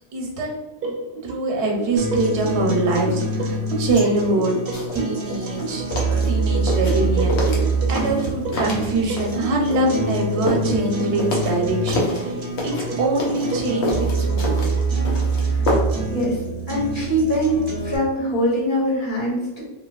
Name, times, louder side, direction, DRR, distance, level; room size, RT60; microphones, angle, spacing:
voice 1, 0.1-0.5 1.2-4.6 4.9-14.8, right 2 dB, 90° right, 0 dB, 1.0 m, -24 dB
sound 1, 0.8-14.8, right 3 dB, 65° right, 0.7 m, -32 dB
sound 2, 2.0-18.0, right 3 dB, 45° right, 0.3 m, -25 dB
sound 3, 4.7-5.0 5.3-9.4 9.7-12.3 12.6-16.1 16.4-16.5, left 2 dB, 90° left, 1.0 m, -27 dB
voice 2, 16.1-19.6, equal, 50° left, -6 dB, 1.2 m, -23 dB
2.8 x 2.5 x 2.3 m, 1.1 s
omnidirectional pair, 1.1 m